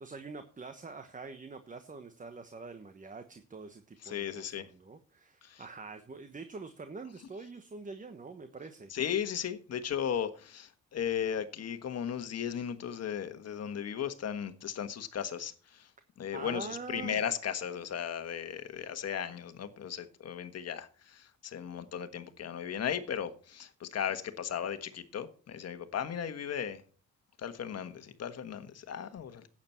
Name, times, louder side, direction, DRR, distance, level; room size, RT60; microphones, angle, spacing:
voice 1, 0.0-8.9 16.3-17.2, right 4 dB, 25° right, 1.2 m, -45 dB
voice 2, 4.0-4.7 5.4-5.6 8.9-15.9 16.2-26.8 27.4-29.5, left 8 dB, 55° left, 1.4 m, -36 dB
12.0 x 8.8 x 4.5 m
cardioid pair, 90°, 30 cm